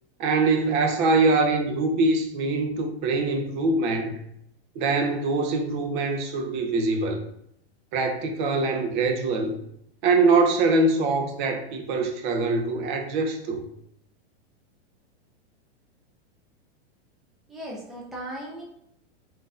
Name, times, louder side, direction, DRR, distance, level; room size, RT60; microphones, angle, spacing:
voice 1, 0.2-4.2 4.7-7.2 7.9-9.6 10.0-13.6, right 3 dB, 50° right, 0.7 m, -23 dB
voice 2, 17.5-18.6, right 1 dB, ahead, 0.4 m, -37 dB
3.8 x 2.7 x 2.4 m
supercardioid pair, 135°, 33 cm